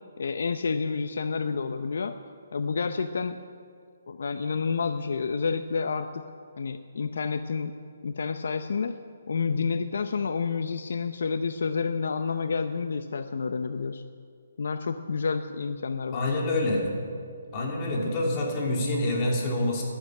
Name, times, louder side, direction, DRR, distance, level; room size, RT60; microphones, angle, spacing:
voice 1, 0.2-2.1 2.5-3.4 4.1-6.2 6.6-7.7 8.0-9.0 9.3-14.0 14.6-16.4, left 5 dB, 65° left, 9 dB, 0.7 m, -29 dB
voice 2, 16.1-16.9 17.5-19.8, left 1 dB, 25° left, -2 dB, 3.1 m, -27 dB
11.5 x 11.5 x 9.2 m, 2.2 s
hypercardioid pair, 160°, 0 cm